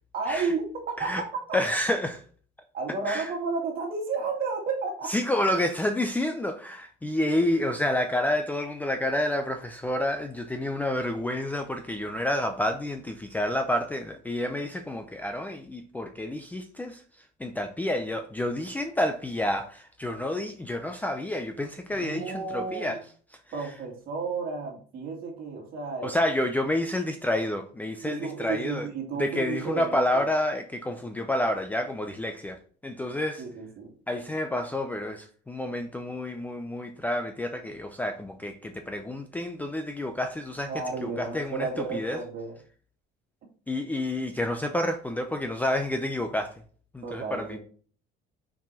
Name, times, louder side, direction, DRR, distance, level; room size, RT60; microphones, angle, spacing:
voice 1, 0.1-1.6 2.7-5.2 21.9-23.0 23.5-26.2 28.0-30.2 33.4-33.9 40.6-42.5 47.0-47.6, right 4 dB, 50° right, 2.2 m, -32 dB
voice 2, 1.5-2.2 3.1-3.3 5.1-17.0 17.4-23.0 26.0-28.9 29.2-32.6 32.8-33.4 34.1-40.7 41.0-42.2 43.7-46.5 46.9-47.6, left 1 dB, 10° left, 0.5 m, -29 dB
5.8 x 4.8 x 4.3 m
cardioid pair, 160°, 20 cm